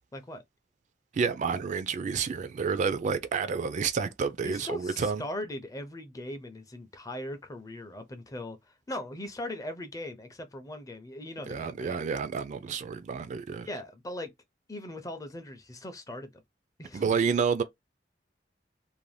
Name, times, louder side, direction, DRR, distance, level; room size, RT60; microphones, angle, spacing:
voice 1, 0.1-0.4 4.4-12.0 13.6-14.3 14.7-16.4 16.8-17.0, left 1 dB, 20° left, 0.5 m, -39 dB
voice 2, 1.1-5.2 11.5-13.7 16.9-17.6, right 5 dB, 45° right, 0.3 m, -29 dB
2.6 x 2.1 x 3.1 m
head